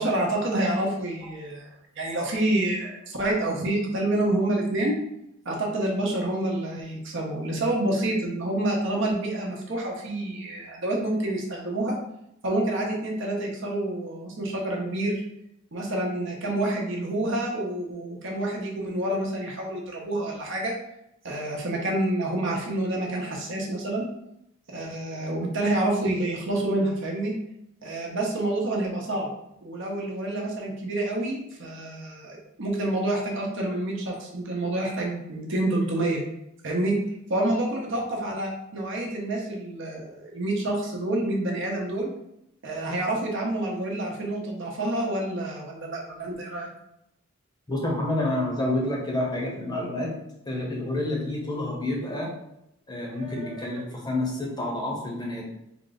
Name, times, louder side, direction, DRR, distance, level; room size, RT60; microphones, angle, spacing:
voice 1, 0.0-1.7 2.0-4.9 5.4-12.0 12.4-15.2 15.7-20.7 21.2-24.1 24.7-27.3 27.8-29.3 29.6-36.2 36.6-36.9 37.3-42.1 42.6-46.7 53.0-53.8, right 1 dB, 60° right, -1 dB, 0.9 m, -28 dB
voice 2, 47.7-50.1 50.5-52.3 52.9-55.4, left 1 dB, 20° left, -2 dB, 0.8 m, -28 dB
3.8 x 2.4 x 3.9 m, 0.80 s
head